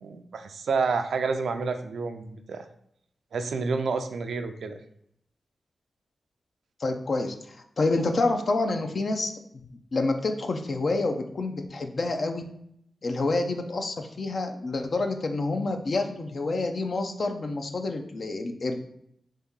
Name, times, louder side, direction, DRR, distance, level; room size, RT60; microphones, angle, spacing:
voice 1, 0.0-2.6 3.3-4.8, right 4 dB, 80° right, 7 dB, 0.4 m, -29 dB
voice 2, 6.8-9.3 9.9-12.4 13.0-18.8, left 2 dB, 60° left, 5 dB, 0.5 m, -28 dB
3.6 x 2.8 x 3.6 m, 0.72 s
cardioid pair, 45°, 0 cm